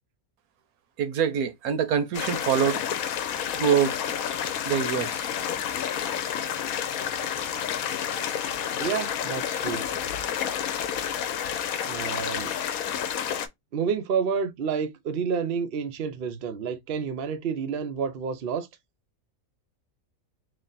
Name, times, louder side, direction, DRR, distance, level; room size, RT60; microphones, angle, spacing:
voice 1, 1.0-2.8 3.5-4.0 4.6-5.3, right 8 dB, 85° right, 1.2 m, -25 dB
sound 1, 2.1-13.5, left 9 dB, 75° left, 1.1 m, -30 dB
voice 2, 8.8-9.8 11.9-12.5 13.7-18.7, right 6 dB, 55° right, 0.7 m, -29 dB
3.2 x 2.5 x 3.9 m
omnidirectional pair, 1.5 m